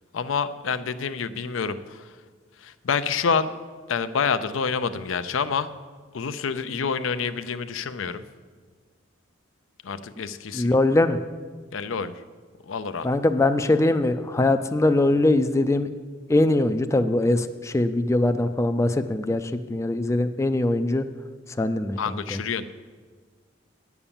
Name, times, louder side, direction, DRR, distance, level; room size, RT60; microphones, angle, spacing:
voice 1, 0.1-2.1 2.6-3.5 3.9-5.7 6.1-8.2 9.8-10.7 11.7-12.1 12.7-13.1 22.0-22.7, left 5 dB, 90° left, 11 dB, 0.5 m, -27 dB
voice 2, 10.5-11.2 13.0-15.9 16.3-21.0 21.6-22.4, left 2 dB, 15° left, 8 dB, 0.4 m, -22 dB
9.8 x 7.2 x 7.1 m, 1.5 s
head